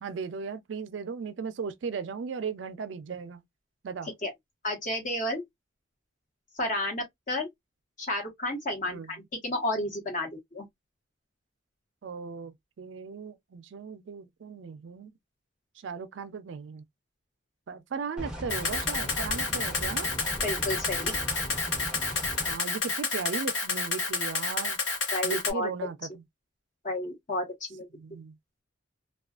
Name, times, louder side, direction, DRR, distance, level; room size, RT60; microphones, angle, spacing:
voice 1, 0.0-3.4 3.8-4.1 8.9-9.1 12.0-15.1 15.8-16.8 17.7-20.1 22.5-24.8 25.2-26.2 27.9-28.4, right 5 dB, 65° right, 0.4 m, -37 dB
voice 2, 4.6-5.4 6.6-7.5 8.0-10.7 20.4-21.1 25.1-25.7 26.8-27.9, left 1 dB, 40° left, 1.1 m, -31 dB
sound 1, 18.2-22.6, right 1 dB, 5° right, 0.6 m, -38 dB
Camera, 18.5-25.5, left 4 dB, 70° left, 0.9 m, -30 dB
2.4 x 2.3 x 2.3 m
head